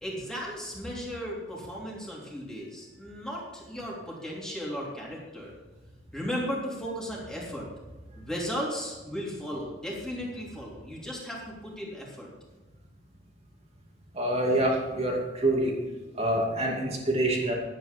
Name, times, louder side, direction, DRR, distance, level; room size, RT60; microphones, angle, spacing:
voice 1, 0.0-5.5 6.1-7.7 8.2-12.3, equal, 5° left, -4 dB, 3.1 m, -35 dB
voice 2, 14.1-15.8 16.2-17.5, right 1 dB, 35° right, -1 dB, 2.4 m, -26 dB
11.5 x 9.2 x 5.2 m, 1.2 s
head